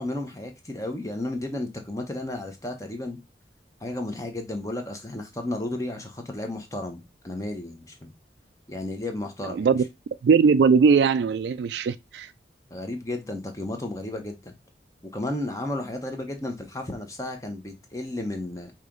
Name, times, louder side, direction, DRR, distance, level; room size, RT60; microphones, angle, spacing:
voice 1, 0.0-3.2 3.8-8.1 8.7-9.8 12.7-14.6 15.1-18.7, left 1 dB, 20° left, 0.9 m, -33 dB
voice 2, 9.5-9.8 10.2-12.3, right 5 dB, 75° right, 0.3 m, -20 dB
4.9 x 2.9 x 3.6 m
head